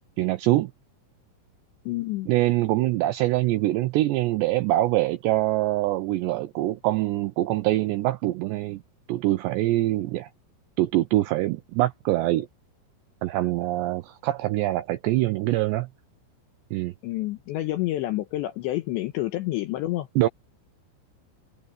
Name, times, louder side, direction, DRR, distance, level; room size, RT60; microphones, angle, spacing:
voice 1, 0.2-0.7 2.3-8.8 9.1-10.3 10.8-12.5 13.2-15.9 16.7-16.9 20.2-20.3, right 16 dB, 85° right, 2.5 m, -24 dB
voice 2, 1.9-2.3 17.0-20.1, left 16 dB, 75° left, 2.9 m, -28 dB
omnidirectional pair, 5.9 m